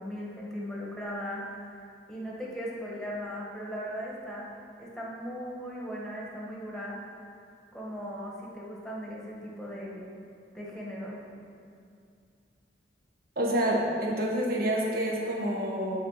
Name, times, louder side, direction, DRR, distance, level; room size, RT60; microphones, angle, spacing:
voice 1, 0.0-1.7 2.1-4.5 4.8-7.0 7.7-10.1 10.5-11.2, equal, ahead, -4 dB, 1.5 m, -38 dB
voice 2, 13.3-16.0, right 1 dB, 55° right, -3 dB, 1.6 m, -28 dB
11.0 x 4.4 x 5.7 m, 2.4 s
head